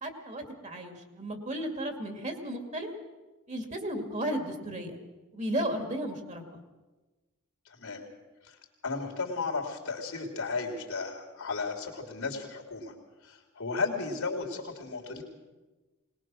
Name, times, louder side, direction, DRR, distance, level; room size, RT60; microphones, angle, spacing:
voice 1, 0.0-2.9 3.5-5.0 5.3-6.4, right 1 dB, 35° right, 5 dB, 2.2 m, -34 dB
voice 2, 7.6-8.0 8.4-8.6 8.8-12.9 13.2-15.2, left 4 dB, 75° left, 3 dB, 3.1 m, -34 dB
21.0 x 20.0 x 6.3 m, 1.2 s
head